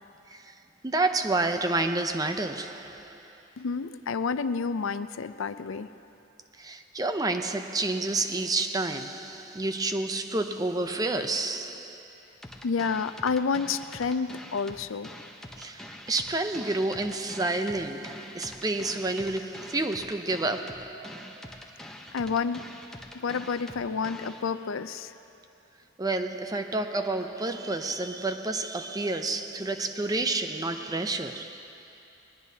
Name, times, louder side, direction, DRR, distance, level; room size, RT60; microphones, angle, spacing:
voice 1, 0.8-3.2 6.6-12.1 15.6-21.5 26.0-31.7, right 2 dB, 20° right, 0.5 m, -29 dB
voice 2, 3.6-5.9 12.6-15.1 22.1-22.6 23.1-25.1, left 5 dB, 90° left, 0.5 m, -29 dB
sound 1, 12.4-24.4, left 1 dB, 5° left, 0.9 m, -45 dB
21.5 x 20.0 x 2.8 m
head